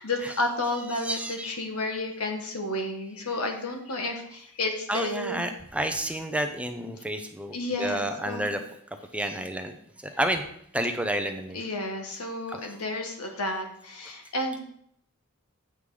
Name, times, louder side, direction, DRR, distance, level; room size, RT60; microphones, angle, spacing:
voice 1, 0.0-5.5 6.8-6.9 7.5-8.5 10.1-10.2 11.5-14.6, left 2 dB, 85° left, 4 dB, 1.5 m, -31 dB
voice 2, 0.7-1.5 4.9-8.6 9.1-9.7 10.2-10.4 10.7-11.6 12.5-12.6, right 1 dB, 5° right, 6 dB, 0.6 m, -30 dB
8.4 x 5.6 x 4.8 m, 0.68 s
head